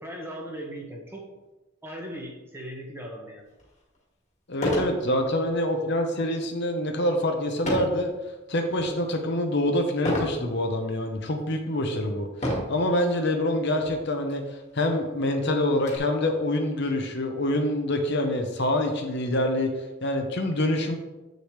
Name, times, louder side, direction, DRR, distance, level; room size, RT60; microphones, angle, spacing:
voice 1, 0.0-1.2 1.8-3.4, equal, 10° right, -1 dB, 1.2 m, -38 dB
sound 1, 3.6-3.7 4.5-5.0 5.4-5.7 7.6-8.0 8.6-9.0 10.0-10.4 11.1-11.2 12.3-12.8 13.8-14.0 14.3-14.4 14.8-16.0, equal, 35° left, 1.7 m, -29 dB
voice 2, 4.5-8.1 8.5-14.4 14.7-19.7 20.0-21.0, left 1 dB, 50° left, 4 dB, 0.9 m, -26 dB
8.4 x 6.6 x 3.2 m, 1.1 s
head